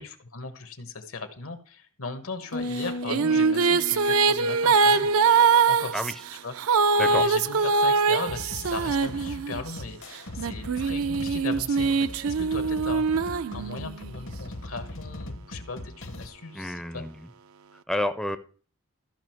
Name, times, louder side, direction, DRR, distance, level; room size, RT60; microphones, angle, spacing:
voice 1, 0.0-5.1 5.7-5.9 6.4-17.1, left 3 dB, 80° left, 8 dB, 1.4 m, -38 dB
sound 1, 2.5-5.9, left 1 dB, 40° left, 0.6 m, -37 dB
sound 2, 2.8-9.8 10.4-14.1, right 5 dB, 75° right, 0.5 m, -23 dB
sound 3, 8.3-16.3, left 1 dB, 60° left, 0.9 m, -40 dB
voice 2, 16.5-17.3 17.7-18.4, left 1 dB, ahead, 10 dB, 0.4 m, -30 dB
13.5 x 5.6 x 4.5 m, 0.41 s
head